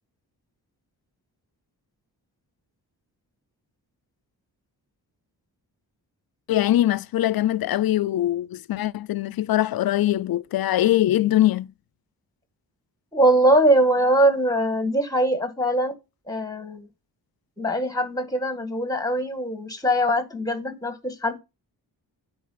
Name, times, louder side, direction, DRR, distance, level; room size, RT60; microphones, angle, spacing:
voice 1, 6.5-11.7, left 13 dB, 65° left, 0.5 m, -22 dB
voice 2, 13.1-15.9 16.3-16.9 17.6-21.4, right 1 dB, 10° left, 1.7 m, -22 dB
9.4 x 4.7 x 5.8 m
wide cardioid pair, 110°, 38 cm